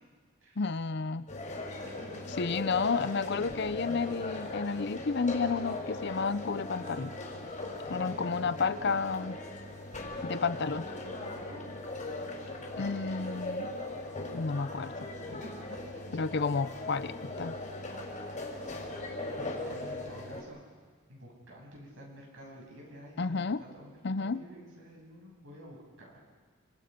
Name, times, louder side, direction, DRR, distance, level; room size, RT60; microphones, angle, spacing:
voice 1, 0.6-1.3 2.4-7.1 7.9-9.4 10.3-10.8 12.8-13.7 14.3-14.9 16.1-17.6 23.2-23.6 24.0-24.4, left 4 dB, 50° left, 14 dB, 0.6 m, -31 dB
sound 1, 1.3-20.4, left 2 dB, 35° left, 4.2 m, -39 dB
voice 2, 7.8-8.9 10.1-10.7 11.0-11.7 15.3-16.5 17.6-19.3 19.7-20.6 21.1-26.2, equal, 65° right, -2 dB, 7.8 m, -51 dB
29.0 x 25.5 x 5.2 m, 1.5 s
head